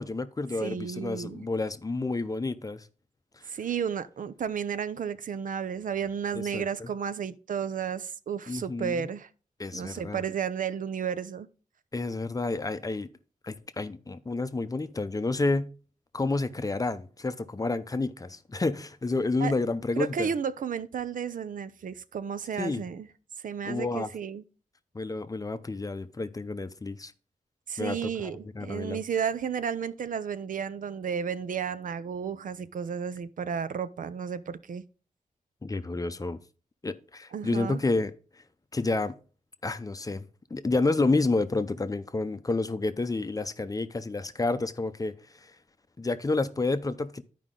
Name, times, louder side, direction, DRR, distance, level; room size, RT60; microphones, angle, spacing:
voice 1, 0.0-2.9 3.4-3.5 6.3-6.9 8.5-9.1 9.6-10.2 11.9-13.1 13.4-15.7 16.1-20.3 22.6-22.8 23.6-24.1 24.9-27.1 27.8-29.0 35.6-36.4 36.8-38.4 38.7-39.2 39.6-40.3 40.5-45.6 46.0-47.2, left 3 dB, 25° left, 0.6 m, -30 dB
voice 2, 0.6-1.5 3.5-9.3 9.7-11.5 19.4-19.5 20.0-23.1 23.4-24.4 27.7-34.8 37.3-37.8, right 7 dB, 70° right, 0.6 m, -32 dB
11.0 x 5.0 x 3.7 m
wide cardioid pair, 115°, 14 cm